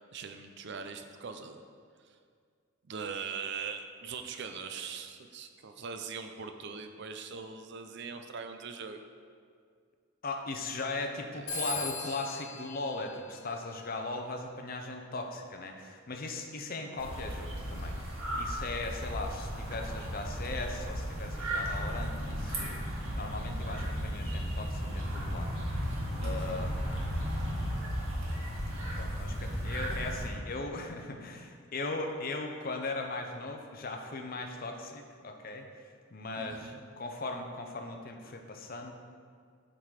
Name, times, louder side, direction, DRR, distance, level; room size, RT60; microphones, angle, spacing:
voice 1, 0.1-1.6 2.0-2.1 2.8-9.0 11.3-11.5 11.8-12.1 26.2-26.7 36.4-36.8, right 5 dB, 55° right, 7 dB, 0.5 m, -41 dB
voice 2, 10.2-18.0 18.4-22.8 23.2-25.5 26.2-27.3 28.9-35.9 36.1-38.9, left 3 dB, 45° left, 4 dB, 0.6 m, -38 dB
Telephone, 11.5-14.0, left 3 dB, 75° left, 1.3 m, -39 dB
sound 1, 17.0-30.3, equal, 85° right, 1.5 m, -35 dB
8.1 x 3.8 x 4.7 m, 2.1 s
head